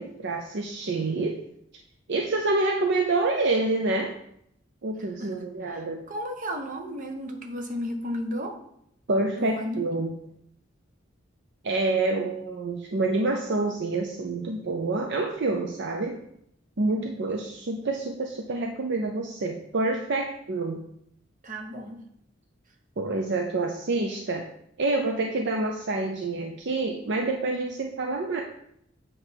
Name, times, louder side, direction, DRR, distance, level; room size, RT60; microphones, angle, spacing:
voice 1, 0.0-1.4 2.1-4.1 4.8-6.0 9.1-10.1 11.6-16.2 16.8-20.8 23.0-24.4 24.8-28.4, right 2 dB, 60° right, 2 dB, 0.6 m, -27 dB
voice 2, 6.1-8.5 9.4-9.9 21.4-22.0, equal, 45° right, 3 dB, 1.0 m, -33 dB
7.8 x 3.3 x 5.8 m, 0.74 s
head